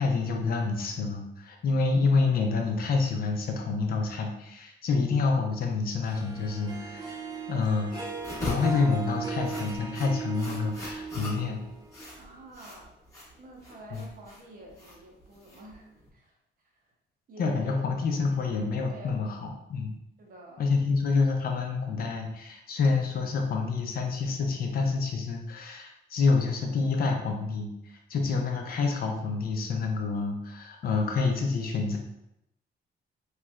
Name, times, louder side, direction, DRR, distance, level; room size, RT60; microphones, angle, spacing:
voice 1, 0.0-8.1 8.4-11.6 13.9-14.0 17.4-19.4 19.7-20.0 20.6-32.0, left 4 dB, 50° left, 2 dB, 0.5 m, -28 dB
Harp, 6.0-12.3, right 5 dB, 20° right, 0.3 m, -38 dB
sound 1, 8.2-16.1, left 1 dB, 15° left, 0.9 m, -41 dB
voice 2, 12.2-12.9 13.4-16.4 16.6-16.9 17.3-17.9 18.3-19.2 20.2-20.7, right 1 dB, 45° right, -1 dB, 0.8 m, -49 dB
3.1 x 3.1 x 2.3 m, 0.82 s
cardioid pair, 160°, 19 cm